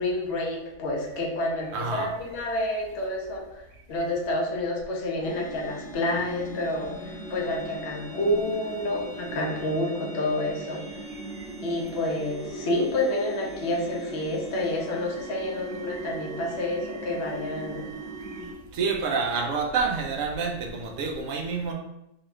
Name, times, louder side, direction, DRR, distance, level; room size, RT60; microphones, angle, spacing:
voice 1, 0.0-3.6 3.9-10.8 11.6-17.9, left 1 dB, 60° left, -1 dB, 0.8 m, -29 dB
voice 2, 1.7-2.1 18.7-21.7, right 4 dB, 65° right, 1 dB, 0.8 m, -28 dB
sound 1, 5.2-18.5, right 2 dB, 5° left, 0.9 m, -39 dB
2.9 x 2.3 x 3.1 m, 0.86 s
omnidirectional pair, 1.6 m